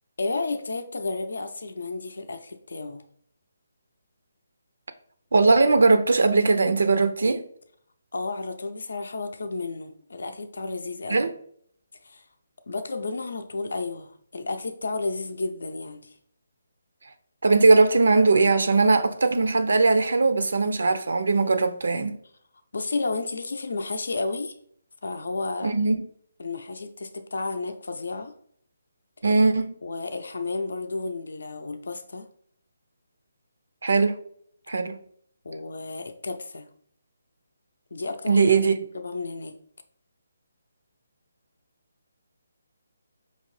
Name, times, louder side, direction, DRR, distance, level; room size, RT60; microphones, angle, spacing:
voice 1, 0.2-3.0 8.1-11.3 12.0-12.2 12.7-16.2 22.7-24.6 25.0-25.7 26.4-28.3 29.8-32.3 35.4-36.7 37.9-38.4 38.9-39.6, left 3 dB, 75° left, 0.5 m, -32 dB
voice 2, 5.3-7.4 11.1-11.3 17.4-22.1 25.6-26.0 29.2-29.7 33.8-34.2 34.7-35.0 38.3-38.8, right 3 dB, 80° right, 0.4 m, -20 dB
5.2 x 2.8 x 3.1 m
hypercardioid pair, 160°, 0 cm